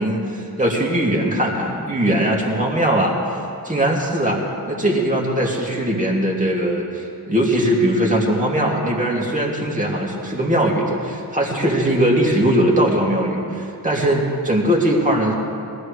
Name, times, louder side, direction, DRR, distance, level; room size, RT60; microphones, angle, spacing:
voice 1, 0.0-3.2 3.6-15.3, right 1 dB, 20° right, -2 dB, 2.5 m, -20 dB
21.0 x 15.0 x 3.3 m, 2.6 s
wide cardioid pair, 120°, 38 cm